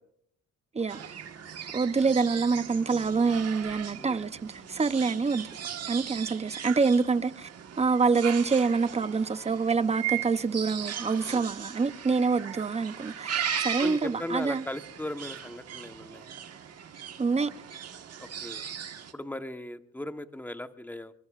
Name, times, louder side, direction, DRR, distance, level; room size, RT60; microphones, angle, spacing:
sound 1, 0.9-19.1, right 8 dB, 55° right, 1.5 m, -38 dB
voice 1, 1.7-5.5 5.9-7.5 7.8-14.6 17.2-17.5, right 4 dB, 20° right, 0.7 m, -26 dB
voice 2, 13.8-16.3 18.2-18.6 19.1-21.1, left 1 dB, 5° left, 1.2 m, -38 dB
25.0 x 22.0 x 2.5 m
cardioid pair, 90°, 30 cm